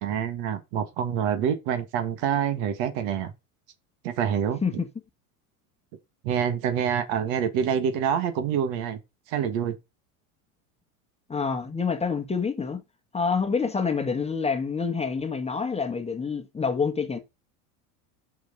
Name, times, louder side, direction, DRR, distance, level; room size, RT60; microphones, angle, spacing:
voice 1, 0.0-3.3 4.0-4.6 6.2-9.0 9.3-9.8, right 8 dB, 60° right, 1.6 m, -26 dB
voice 2, 11.3-12.8 13.1-17.2, left 5 dB, 15° left, 1.3 m, -27 dB
6.1 x 5.2 x 3.9 m
hypercardioid pair, 100°, 44 cm